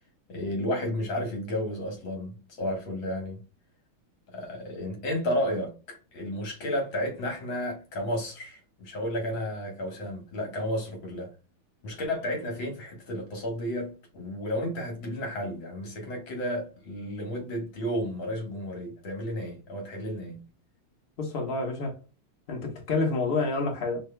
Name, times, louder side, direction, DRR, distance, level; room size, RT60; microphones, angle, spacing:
voice 1, 0.3-3.4 4.3-11.3 11.8-20.4, equal, 70° left, 2.2 m, -32 dB
voice 2, 21.2-22.0 22.5-24.0, left 3 dB, 40° left, 0.9 m, -28 dB
5.5 x 2.6 x 2.2 m
omnidirectional pair, 2.3 m